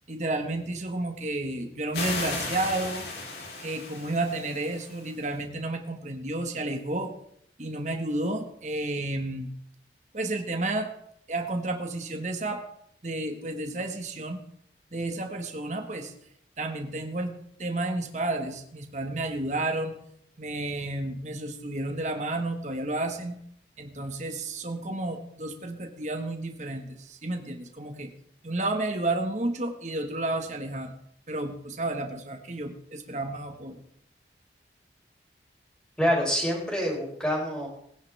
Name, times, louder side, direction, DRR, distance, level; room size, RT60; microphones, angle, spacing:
voice 1, 0.1-3.0 3.6-7.1 7.6-9.5 10.1-10.9 11.3-12.6 13.0-14.4 14.9-16.1 16.6-20.0 20.4-23.4 23.8-28.1 28.4-30.9 31.3-33.8, right 2 dB, 40° right, 4 dB, 1.6 m, -31 dB
sound 1, 1.9-5.2, left 3 dB, 65° left, 3.5 m, -35 dB
voice 2, 36.0-37.7, equal, 5° left, -1 dB, 4.2 m, -26 dB
20.0 x 10.5 x 3.6 m, 0.69 s
head